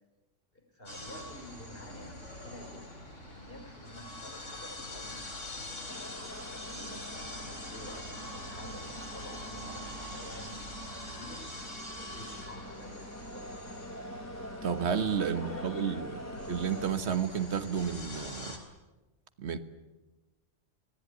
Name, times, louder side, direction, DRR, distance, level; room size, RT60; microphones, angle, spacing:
voice 1, 0.5-5.8 6.5-11.6 12.0-13.8 15.1-16.4, left 1 dB, 45° left, 4 dB, 4.4 m, -49 dB
sound 1, 0.9-18.6, left 1 dB, 70° left, 5.0 m, -44 dB
sound 2, 5.9-16.9, equal, 15° left, 1.0 m, -45 dB
voice 2, 14.6-18.6 19.4-19.6, right 7 dB, 60° right, 9 dB, 1.6 m, -31 dB
27.0 x 18.5 x 9.3 m, 1.1 s
omnidirectional pair, 1.3 m